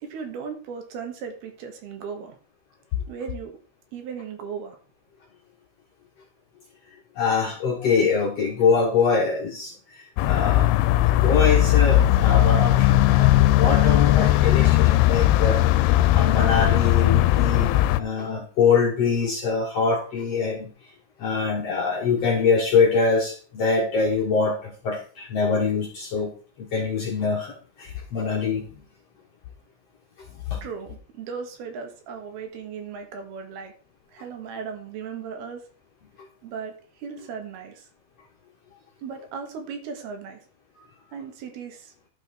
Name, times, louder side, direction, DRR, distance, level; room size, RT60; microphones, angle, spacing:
voice 1, 0.0-2.4 3.1-3.5 3.9-4.8 30.6-33.7 34.1-35.6 36.4-37.9 39.0-40.4 41.1-41.9, right 6 dB, 75° right, 5 dB, 3.4 m, -36 dB
voice 2, 7.2-9.7 10.2-15.6 16.1-20.7 21.2-28.7 30.5-30.6, left 5 dB, 60° left, -1 dB, 1.8 m, -24 dB
sound 1, 10.2-18.0, left 14 dB, 90° left, 2.6 m, -18 dB
11.5 x 5.8 x 4.3 m, 0.39 s
omnidirectional pair, 4.5 m